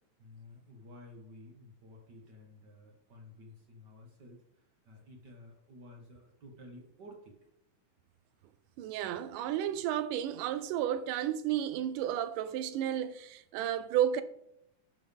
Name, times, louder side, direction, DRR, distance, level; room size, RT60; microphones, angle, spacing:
voice 1, 0.2-4.4 4.9-7.4, left 1 dB, 45° right, 1.7 m, -53 dB
voice 2, 8.8-14.2, right 10 dB, 90° right, 2.2 m, -32 dB
11.5 x 6.7 x 3.6 m
omnidirectional pair, 3.6 m